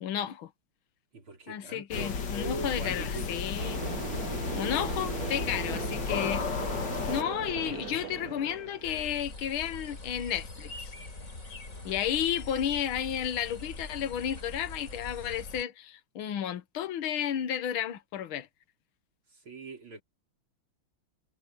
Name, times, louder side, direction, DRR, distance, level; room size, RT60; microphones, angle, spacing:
voice 1, 0.0-0.5 1.5-3.8 4.5-6.5 7.1-10.9 11.9-18.5, left 10 dB, 75° left, 1.9 m, -32 dB
voice 2, 1.1-3.4 19.3-20.0, right 2 dB, 75° right, 5.3 m, -41 dB
sound 1, 1.9-7.2, left 5 dB, 60° left, 2.2 m, -33 dB
sound 2, 3.6-9.1, right 7 dB, 50° right, 1.4 m, -39 dB
sound 3, 8.8-15.6, left 2 dB, 40° left, 4.1 m, -43 dB
omnidirectional pair, 2.3 m